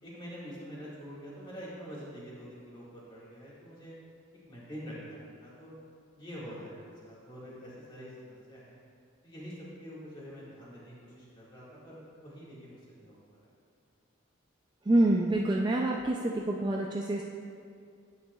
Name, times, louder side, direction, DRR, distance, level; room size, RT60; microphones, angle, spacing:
voice 1, 0.0-3.9 4.5-5.7 6.2-8.8 9.2-9.5 9.8-13.2, equal, 20° left, -7 dB, 1.8 m, -46 dB
voice 2, 14.9-17.2, right 1 dB, 20° right, -1 dB, 0.3 m, -26 dB
9.2 x 9.1 x 2.3 m, 2.3 s
head